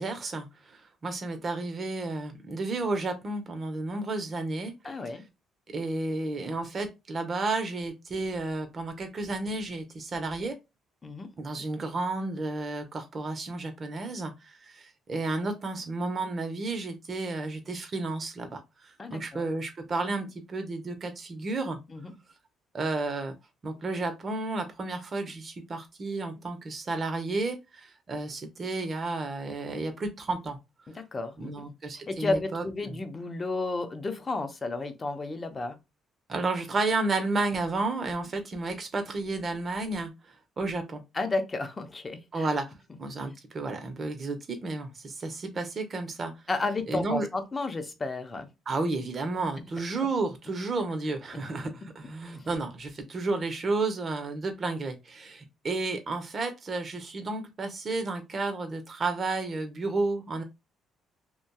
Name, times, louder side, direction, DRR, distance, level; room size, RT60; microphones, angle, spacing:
voice 1, 0.0-4.7 5.7-10.6 11.4-14.3 14.6-21.8 22.7-23.3 23.6-30.6 31.4-33.0 36.3-40.1 40.6-41.0 42.3-42.7 43.0-46.3 46.9-47.3 48.7-60.4, right 3 dB, 45° right, 0.8 m, -32 dB
voice 2, 4.8-5.2 11.0-11.3 19.0-19.5 21.9-22.1 30.9-31.7 32.1-35.8 41.1-42.5 46.5-48.5, left 3 dB, 30° left, 0.6 m, -32 dB
2.6 x 2.2 x 2.2 m
supercardioid pair, 60°, 0 cm